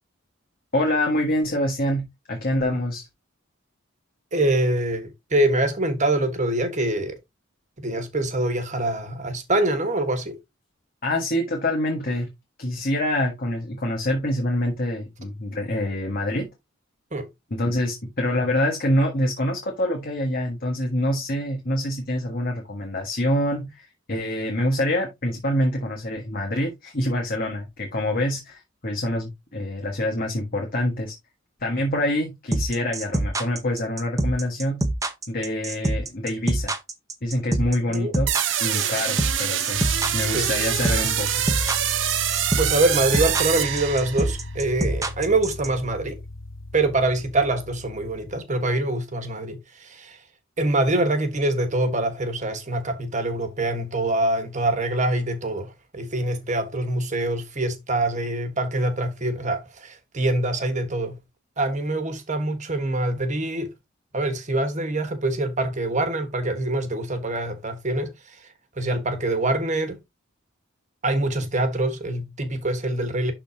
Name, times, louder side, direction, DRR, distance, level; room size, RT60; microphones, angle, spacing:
voice 1, 0.7-3.1 11.0-12.3 12.6-16.4 17.5-31.1 31.6-34.8 35.3-36.7 37.2-38.3 38.6-41.4, left 1 dB, 45° left, 1.5 m, -26 dB
voice 2, 4.3-7.2 7.8-10.4 17.1-17.3 37.9-38.1 40.2-40.5 42.6-46.2 46.7-50.2 50.6-61.1 61.6-63.7 64.1-68.4 68.8-70.0 71.0-73.3, right 2 dB, 35° right, 1.4 m, -25 dB
sound 1, 32.5-45.7, right 1 dB, 15° right, 0.8 m, -25 dB
sound 2, 38.3-44.4, right 11 dB, 65° right, 0.8 m, -25 dB
sound 3, 39.7-48.4, left 2 dB, 75° left, 0.7 m, -37 dB
11.5 x 3.8 x 2.8 m
head